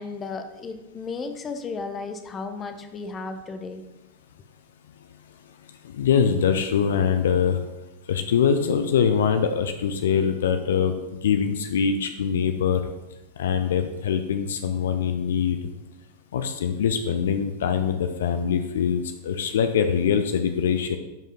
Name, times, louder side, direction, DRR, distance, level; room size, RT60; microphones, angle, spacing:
voice 1, 0.0-3.8, left 4 dB, 20° left, 8 dB, 0.9 m, -34 dB
voice 2, 5.9-7.6 8.1-12.8 13.4-15.6 16.3-21.0, left 7 dB, 60° left, 8 dB, 0.6 m, -23 dB
12.0 x 5.2 x 3.8 m, 0.99 s
figure-of-eight pair, 90°, 0 cm